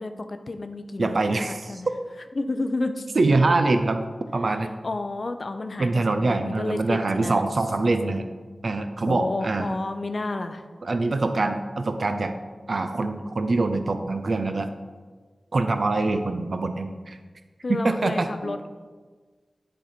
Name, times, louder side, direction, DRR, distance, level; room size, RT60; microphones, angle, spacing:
voice 1, 0.0-1.9 2.4-3.1 4.8-7.4 9.1-10.6 17.6-18.7, left 2 dB, 55° left, 8 dB, 0.5 m, -31 dB
voice 2, 1.0-1.8 3.2-4.0 4.3-4.7 5.8-8.3 8.6-9.7 10.8-12.3 12.7-14.7 15.5-17.2 17.7-18.5, right 3 dB, 65° right, 7 dB, 0.4 m, -24 dB
10.5 x 4.1 x 4.3 m, 1.4 s
wide cardioid pair, 70°, 0 cm